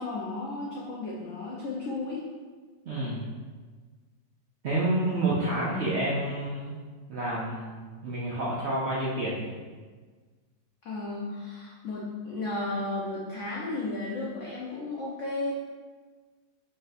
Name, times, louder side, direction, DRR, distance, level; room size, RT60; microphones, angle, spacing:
voice 1, 0.0-2.3 10.8-15.5, left 2 dB, 75° left, -4 dB, 0.6 m, -34 dB
voice 2, 2.9-3.3 4.6-6.8 7.1-9.5, right 1 dB, 90° right, -6 dB, 0.5 m, -29 dB
3.8 x 2.6 x 3.9 m, 1.4 s
omnidirectional pair, 2.0 m